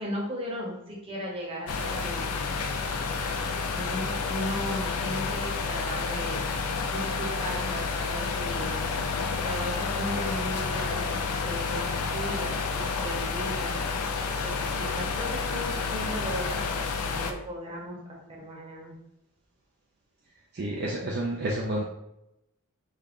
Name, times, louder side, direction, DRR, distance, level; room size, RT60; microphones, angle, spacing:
voice 1, 0.0-2.6 3.7-6.4 6.9-8.8 9.3-11.2 11.5-11.9 12.1-13.8 14.4-16.6 17.0-18.0 18.3-18.9, equal, 25° right, -4 dB, 1.0 m, -36 dB
sound 1, 1.7-17.3, left 4 dB, 85° left, 0.4 m, -30 dB
voice 2, 20.5-21.8, right 1 dB, 45° right, -2 dB, 0.4 m, -30 dB
3.6 x 2.2 x 3.5 m, 0.87 s
head